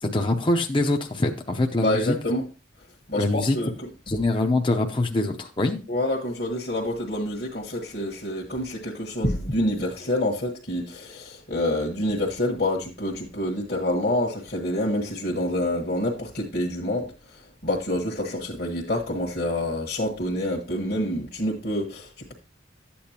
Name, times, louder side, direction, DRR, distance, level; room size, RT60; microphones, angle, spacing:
voice 1, 0.0-2.2 3.1-3.6 4.1-5.8, left 2 dB, 25° left, 0.7 m, -24 dB
voice 2, 1.8-2.5 3.1-3.9 5.9-22.3, left 1 dB, 50° left, 1.4 m, -27 dB
12.5 x 8.6 x 2.9 m
head